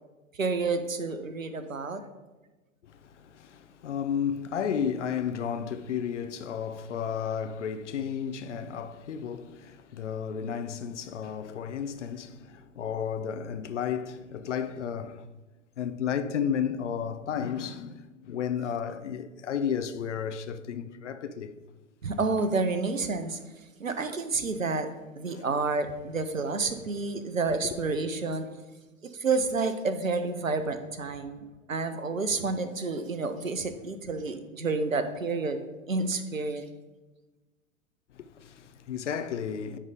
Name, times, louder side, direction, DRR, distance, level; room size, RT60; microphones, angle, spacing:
voice 1, 0.4-2.0 22.0-23.4 23.8-24.9 25.2-28.5 29.0-35.6 35.9-36.6, right 3 dB, 85° right, 0.8 m, -29 dB
voice 2, 2.8-15.3 15.8-21.5 24.0-24.1 25.3-25.5 27.5-27.8 38.1-39.8, left 8 dB, 65° left, 0.6 m, -33 dB
10.0 x 3.3 x 5.1 m
figure-of-eight pair, 95°, 39 cm